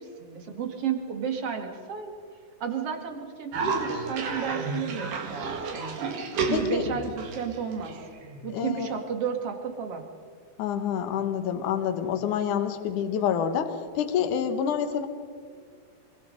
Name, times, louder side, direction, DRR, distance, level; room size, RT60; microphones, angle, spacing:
voice 1, 0.0-2.1 2.6-6.0 6.4-8.0 8.4-10.0, right 7 dB, 45° right, 5 dB, 2.7 m, -32 dB
Cough, 3.5-8.6, right 4 dB, 60° right, 3.3 m, -32 dB
voice 2, 6.5-7.0 8.5-8.9 10.6-15.1, left 8 dB, 65° left, 8 dB, 2.7 m, -27 dB
25.5 x 23.5 x 5.3 m, 2.1 s
omnidirectional pair, 4.2 m